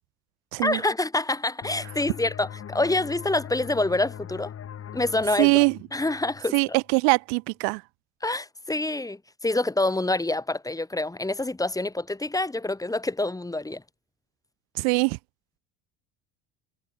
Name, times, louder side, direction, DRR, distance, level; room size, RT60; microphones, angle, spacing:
voice 1, 0.6-4.5 4.9-5.5 5.9-6.6 8.2-13.8, left 2 dB, 10° left, 2.6 m, -26 dB
sound 1, 1.6-7.0, left 9 dB, 40° left, 3.1 m, -41 dB
voice 2, 5.4-5.8 6.5-7.8 14.8-15.2, right 40 dB or more, 80° right, 0.9 m, -22 dB
supercardioid pair, 100°, 36 cm